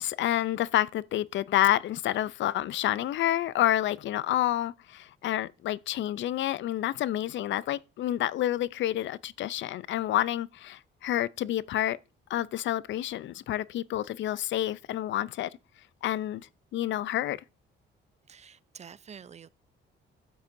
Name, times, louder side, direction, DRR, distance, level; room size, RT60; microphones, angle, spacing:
voice 1, 0.0-12.0 12.3-15.5 16.0-17.4, left 13 dB, 70° left, 0.5 m, -29 dB
voice 2, 18.3-19.5, right 7 dB, 35° right, 0.4 m, -48 dB
12.0 x 8.6 x 2.6 m
cardioid pair, 90°, 20 cm